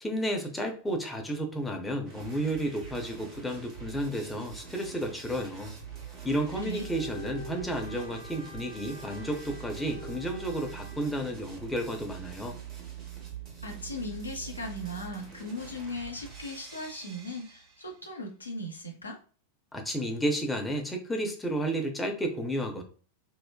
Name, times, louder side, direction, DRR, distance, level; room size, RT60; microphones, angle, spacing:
voice 1, 0.0-5.7 6.2-12.5 19.7-22.8, right 1 dB, 5° left, 2 dB, 0.5 m, -32 dB
sound 1, 2.1-18.0, right 8 dB, 30° right, 0.9 m, -44 dB
voice 2, 6.6-6.9 13.6-19.2, left 1 dB, 80° left, 2 dB, 0.6 m, -38 dB
Bowed string instrument, 6.6-11.1, left 2 dB, 70° right, 0.9 m, -47 dB
3.0 x 2.0 x 2.2 m, 0.40 s
figure-of-eight pair, 90°, 0 cm